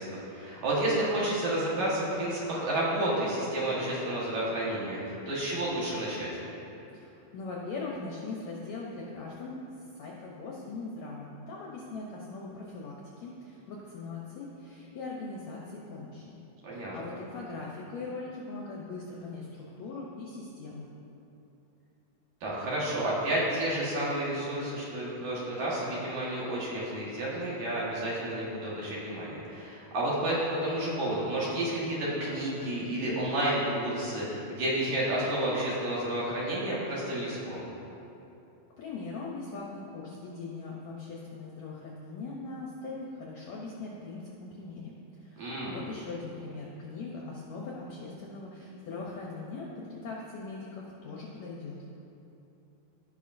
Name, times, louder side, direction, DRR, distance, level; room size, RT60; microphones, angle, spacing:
voice 1, 0.0-6.3 16.6-17.0 22.4-37.7 45.4-45.8, right 1 dB, 60° right, -6 dB, 2.7 m, -31 dB
voice 2, 6.9-16.4 16.7-20.9 38.8-51.8, left 3 dB, 75° left, -3 dB, 1.6 m, -40 dB
16.0 x 5.8 x 2.6 m, 2.9 s
omnidirectional pair, 4.1 m